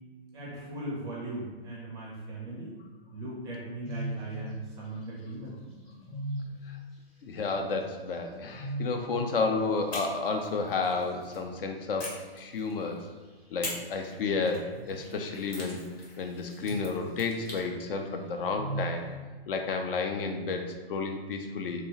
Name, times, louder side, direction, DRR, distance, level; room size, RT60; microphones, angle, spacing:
voice 1, 0.3-2.8 3.1-5.6, right 2 dB, 10° right, -5 dB, 0.4 m, -38 dB
sound 1, 3.8-4.4 5.0-5.1 5.6-6.6 8.1-9.1 12.6-13.1 14.2-15.1 16.2-17.1 18.1-19.1, right 2 dB, 20° left, 0.8 m, -38 dB
voice 2, 7.2-13.1 13.5-15.8 16.2-19.1 19.5-21.8, left 4 dB, 65° left, 4 dB, 0.5 m, -31 dB
sound 2, 9.9-11.4 12.0-13.0 13.6-17.7, left 1 dB, 85° left, 1.1 m, -43 dB
2.7 x 2.2 x 3.0 m, 1.4 s
figure-of-eight pair, 120°, 31 cm